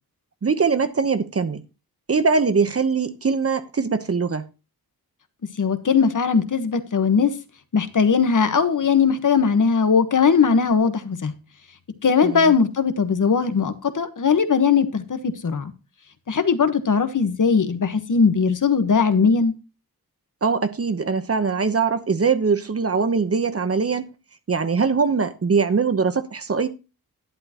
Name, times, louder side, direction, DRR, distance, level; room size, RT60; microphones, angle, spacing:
voice 1, 0.4-1.6 2.1-4.4 12.2-12.5 20.4-24.1 24.5-26.7, right 5 dB, 40° right, 1.0 m, -22 dB
voice 2, 5.6-7.3 7.7-11.3 12.0-15.7 16.3-19.5, left 5 dB, 55° left, 1.3 m, -19 dB
11.5 x 10.5 x 3.0 m
wide cardioid pair, 130°, 37 cm